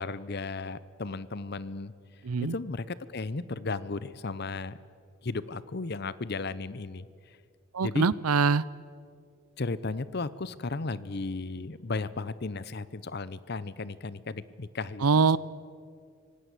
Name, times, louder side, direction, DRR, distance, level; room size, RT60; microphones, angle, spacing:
voice 1, 0.0-1.9 2.5-4.8 5.2-7.0 7.8-8.1 9.6-15.4, left 3 dB, 45° left, 17 dB, 0.7 m, -35 dB
voice 2, 2.2-2.5 7.7-8.6 15.0-15.4, right 5 dB, 85° right, 21 dB, 0.6 m, -23 dB
25.5 x 18.5 x 8.3 m, 2.2 s
head